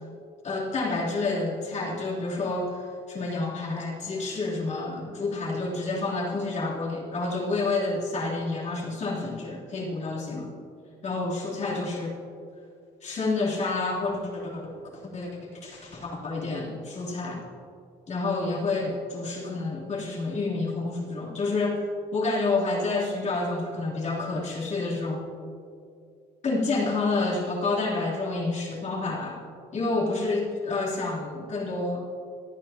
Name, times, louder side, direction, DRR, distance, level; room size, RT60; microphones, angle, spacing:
voice 1, 0.4-10.5 11.0-12.1 13.0-14.6 14.9-17.5 18.1-25.2 26.4-29.4 29.7-32.0, left 3 dB, 45° left, -4 dB, 3.3 m, -29 dB
26.5 x 9.1 x 2.9 m, 2.4 s
cardioid pair, 110°, 17 cm